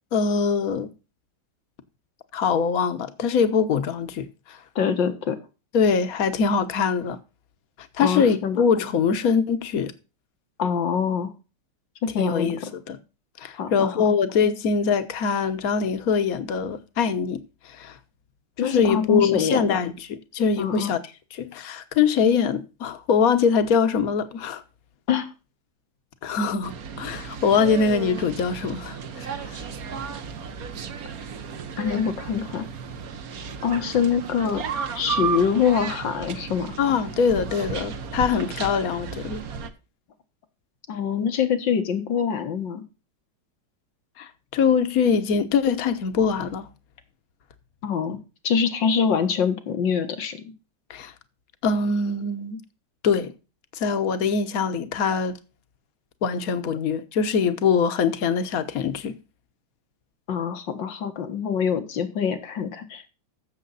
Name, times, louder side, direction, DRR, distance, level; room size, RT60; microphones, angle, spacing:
voice 1, 0.1-0.9 2.3-4.6 5.7-7.2 8.0-9.9 12.1-13.0 13.4-17.4 17.6-18.0 18.6-21.0 21.4-24.6 26.2-29.6 36.8-39.4 44.2-46.7 50.9-51.1 51.6-52.6 53.0-53.3 53.7-55.4 56.2-59.2, left 6 dB, 55° left, 1.5 m, -23 dB
voice 2, 4.8-5.4 8.0-8.6 10.6-11.3 12.0-12.7 13.5-14.1 18.6-19.8 20.6-20.9 25.1-25.3 31.8-32.7 33.6-34.6 35.0-36.8 40.9-42.8 47.8-50.4 60.3-63.1, left 7 dB, 85° left, 2.2 m, -25 dB
sound 1, 26.6-39.7, right 6 dB, 55° right, 1.4 m, -34 dB
15.0 x 7.2 x 4.1 m
omnidirectional pair, 2.0 m